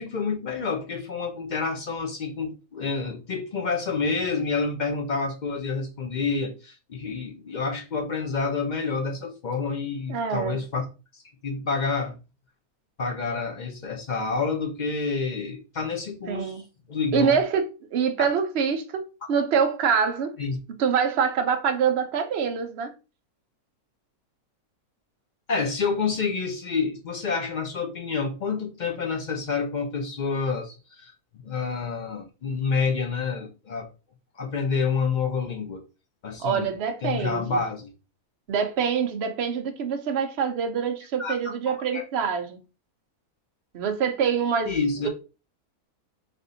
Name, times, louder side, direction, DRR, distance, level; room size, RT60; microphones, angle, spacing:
voice 1, 0.0-10.8 11.1-12.2 13.0-16.6 16.9-17.4 20.4-20.6 25.5-31.1 31.4-33.9 34.4-35.8 36.2-36.7 37.0-37.9 41.2-42.0 44.7-45.1, left 4 dB, 60° left, 0.4 m, -28 dB
voice 2, 10.1-10.6 16.3-16.6 17.1-17.6 17.9-19.0 19.3-20.4 20.8-22.9 36.4-37.6 38.5-42.6 43.7-44.8, right 6 dB, 55° right, 0.8 m, -25 dB
3.5 x 2.6 x 3.9 m
omnidirectional pair, 1.6 m